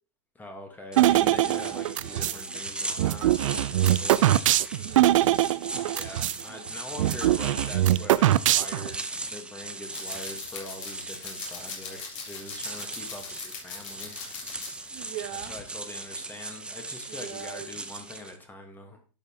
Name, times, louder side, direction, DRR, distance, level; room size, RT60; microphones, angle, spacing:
voice 1, 0.3-4.3 5.9-14.3 15.3-19.1, left 2 dB, 10° left, 4 dB, 1.3 m, -43 dB
sound 1, 0.9-18.4, right 2 dB, 5° right, 0.6 m, -38 dB
sound 2, 1.0-2.4 3.0-6.4 6.7-6.8 7.0-9.0, right 14 dB, 65° right, 0.4 m, -22 dB
voice 2, 4.7-5.6 14.9-15.6 17.1-17.9, right 11 dB, 45° right, 10 dB, 1.1 m, -41 dB
sound 3, 9.9-15.1 15.4-15.6, left 5 dB, 60° left, 3.5 m, -40 dB
11.5 x 5.3 x 2.8 m, 0.38 s
hypercardioid pair, 125°, 18 cm